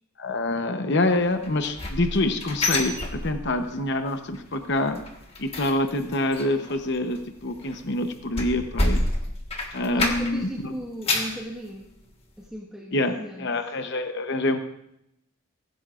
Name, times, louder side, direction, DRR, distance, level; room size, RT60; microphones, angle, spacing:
voice 1, 0.2-5.0 5.4-9.1 9.7-10.7 12.9-14.6, left 2 dB, 50° left, 7 dB, 0.9 m, -26 dB
sound 1, 1.4-3.8 4.1-4.4 4.7-10.5 10.8-11.4 11.9-12.0 12.4-12.5, left 2 dB, 25° left, 1.5 m, -29 dB
voice 2, 9.9-11.9 12.4-13.5, equal, 5° right, -5 dB, 1.4 m, -37 dB
22.5 x 15.5 x 2.5 m, 0.81 s
head